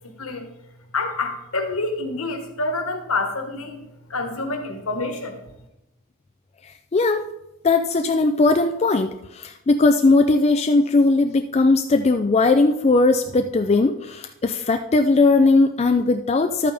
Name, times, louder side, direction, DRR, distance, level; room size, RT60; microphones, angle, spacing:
voice 1, 0.9-3.8 4.1-5.4, left 3 dB, 70° left, 5 dB, 1.5 m, -27 dB
voice 2, 6.9-7.2 7.6-16.7, left 3 dB, 30° left, 7 dB, 0.3 m, -18 dB
12.0 x 8.6 x 3.4 m, 0.90 s
head